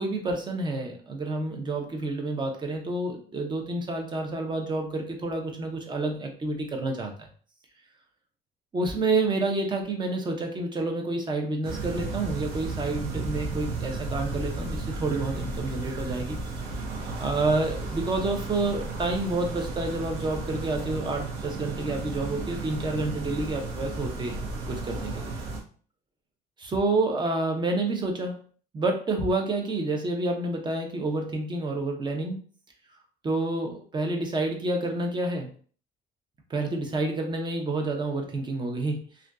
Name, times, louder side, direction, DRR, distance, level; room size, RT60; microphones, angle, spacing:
voice 1, 0.0-7.1 8.7-16.4 17.2-24.4 24.7-25.4 26.6-28.4 28.7-32.4 33.2-35.5 36.5-39.0, right 2 dB, 25° right, 3 dB, 0.6 m, -29 dB
sound 1, 11.6-25.6, right 3 dB, 85° right, 0.6 m, -34 dB
2.5 x 2.2 x 2.3 m, 0.44 s
cardioid pair, 110°, 17 cm